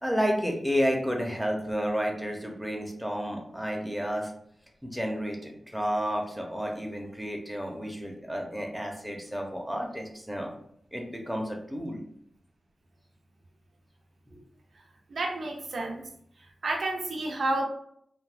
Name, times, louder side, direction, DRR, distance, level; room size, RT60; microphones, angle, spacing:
voice 1, 0.0-4.3 4.8-10.5 10.9-12.0 14.3-14.4, equal, ahead, 1 dB, 0.8 m, -31 dB
voice 2, 15.1-16.0 16.6-17.6, right 2 dB, 75° right, 1 dB, 0.6 m, -30 dB
2.5 x 2.1 x 3.3 m, 0.69 s
cardioid pair, 50°, 0 cm